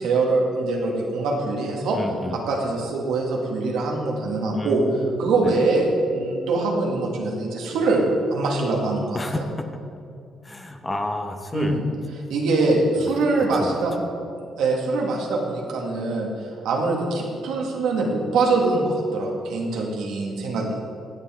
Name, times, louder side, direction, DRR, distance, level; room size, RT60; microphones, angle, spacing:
voice 1, 0.0-2.0 2.3-4.8 5.2-8.0 8.3-9.2 11.5-11.8 12.3-13.9 14.6-16.3 16.6-20.8, right 3 dB, 85° right, -1 dB, 2.0 m, -23 dB
voice 2, 1.9-2.4 4.5-5.7 9.1-9.6 10.4-11.8 13.0-13.1 13.5-14.0, left 1 dB, 20° left, 4 dB, 1.0 m, -30 dB
16.5 x 7.1 x 3.7 m, 2.5 s
cardioid pair, 90°, 0 cm